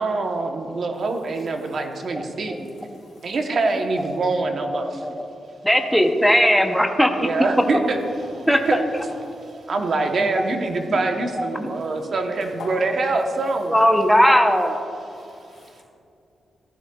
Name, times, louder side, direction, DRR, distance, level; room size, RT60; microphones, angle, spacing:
voice 1, 0.0-2.5 3.2-5.0 7.2-8.0 8.5-8.8 9.7-13.8, right 3 dB, 45° right, 4 dB, 0.9 m, -24 dB
voice 2, 2.2-2.6 4.0-4.1 4.7-5.3 5.6-7.3 8.5-8.8 10.4-10.5 10.9-11.0 11.4-11.7 12.3-12.4 13.1-13.2 13.7-14.7, equal, ahead, 4 dB, 0.7 m, -19 dB
voice 3, 2.9-3.3 8.2-8.3 9.0-9.6 11.8-11.9 12.4-12.9 13.3-13.4 15.0-15.8, left 3 dB, 80° left, -3 dB, 2.7 m, -42 dB
15.0 x 11.0 x 2.3 m, 2.6 s
wide cardioid pair, 160°, 0 cm